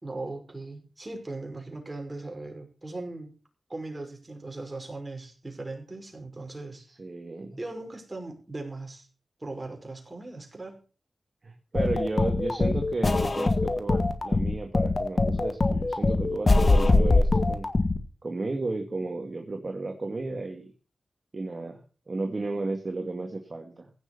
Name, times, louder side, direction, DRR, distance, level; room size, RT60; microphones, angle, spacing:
voice 1, 0.0-3.3 3.7-6.8 7.6-9.1 9.4-10.8, right 2 dB, 30° right, 2 dB, 5.5 m, -38 dB
voice 2, 7.0-7.6 11.4-17.7 18.2-20.7 21.3-23.9, right 3 dB, 45° right, 4 dB, 1.9 m, -33 dB
sound 1, 11.7-18.0, left 2 dB, 45° left, 1.8 m, -23 dB
16.0 x 6.7 x 6.9 m, 0.36 s
wide cardioid pair, 75°, 0 cm